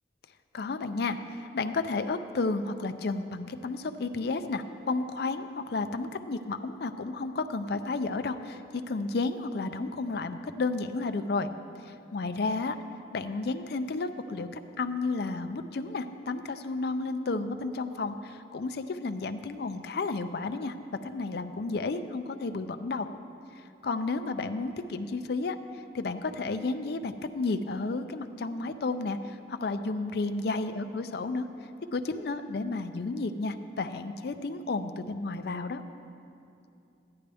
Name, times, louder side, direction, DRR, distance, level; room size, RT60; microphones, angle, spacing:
voice 1, 0.5-11.5 11.9-12.8 13.1-20.7 21.0-23.1 23.8-25.6 25.9-31.5 31.9-35.8, left 3 dB, 55° left, 9 dB, 0.4 m, -32 dB
13.0 x 10.5 x 3.4 m, 2.6 s
head